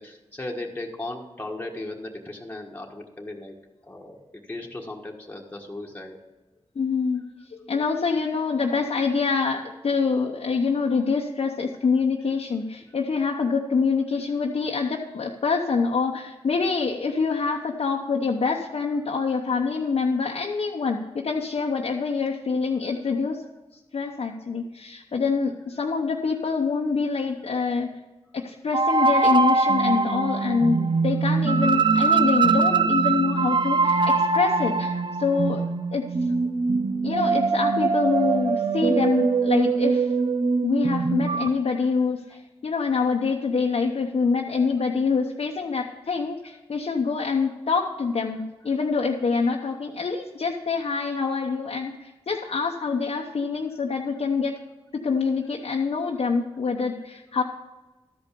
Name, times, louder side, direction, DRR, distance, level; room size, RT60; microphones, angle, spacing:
voice 1, 0.0-3.5 3.8-4.2 4.5-6.2 42.3-42.4 42.7-42.8, left 2 dB, 15° left, -1 dB, 1.5 m, -36 dB
voice 2, 6.8-23.4 23.9-27.9 28.3-35.6 35.9-36.1 37.0-40.1 40.6-54.6 54.9-57.4, left 4 dB, 65° left, 0 dB, 0.9 m, -25 dB
sound 1, 28.7-41.5, right 4 dB, 45° right, 0.6 m, -22 dB
12.5 x 5.3 x 6.8 m, 1.1 s
cardioid pair, 60°, 11 cm